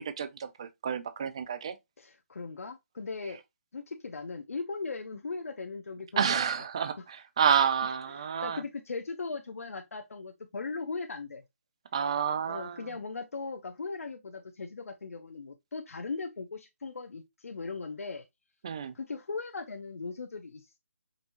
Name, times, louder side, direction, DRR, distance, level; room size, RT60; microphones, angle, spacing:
voice 1, 0.0-1.8 6.2-8.6 11.9-12.9 18.6-19.0, right 7 dB, 25° right, 0.3 m, -29 dB
voice 2, 2.0-3.4 3.7-6.4 8.2-11.4 12.5-18.2 18.9-20.8, left 4 dB, 85° left, 0.7 m, -38 dB
5.2 x 2.6 x 2.8 m
hypercardioid pair, 175°, 8 cm